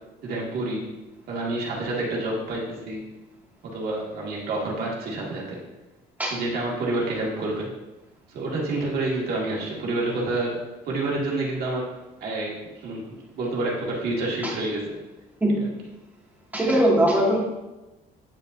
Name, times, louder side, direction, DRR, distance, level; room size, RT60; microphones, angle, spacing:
voice 1, 0.2-1.0 1.3-3.1 3.6-5.6 6.3-7.7 8.3-11.9 12.2-15.0, right 2 dB, 65° right, -3 dB, 2.1 m, -28 dB
voice 2, 16.5-17.4, right 1 dB, 10° right, -4 dB, 2.1 m, -20 dB
9.3 x 5.3 x 2.7 m, 1.0 s
cardioid pair, 110°, 17 cm